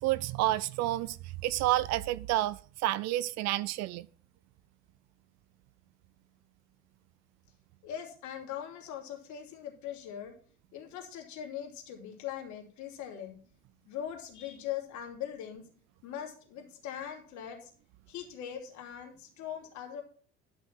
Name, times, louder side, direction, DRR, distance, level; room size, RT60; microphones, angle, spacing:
voice 1, 0.0-4.1, right 16 dB, 50° right, 0.5 m, -30 dB
voice 2, 7.8-10.3 10.7-13.3 13.9-15.6 16.0-17.7 18.1-20.0, left 10 dB, 55° left, 3.0 m, -41 dB
11.5 x 6.2 x 5.7 m
figure-of-eight pair, 65°, 35 cm